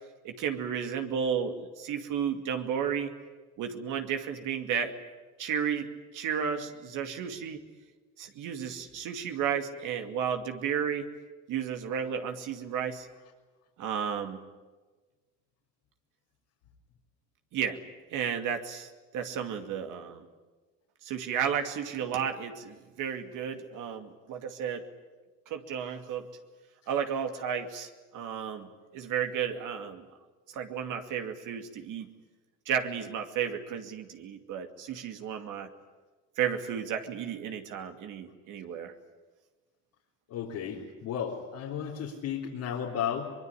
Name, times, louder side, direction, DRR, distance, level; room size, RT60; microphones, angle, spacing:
voice 1, 0.2-3.1 3.6-4.9 5.4-7.6 8.2-11.1 11.5-13.1 13.8-14.4 17.5-17.8 18.1-20.2 21.0-24.9 25.5-26.3 26.9-30.0 30.5-32.1 32.7-35.7 36.4-38.9, right 8 dB, 75° right, 6 dB, 2.5 m, -33 dB
voice 2, 40.3-43.2, left 8 dB, 85° left, -5 dB, 3.7 m, -34 dB
23.5 x 22.0 x 10.0 m, 1.3 s
cardioid pair, 100°, 31 cm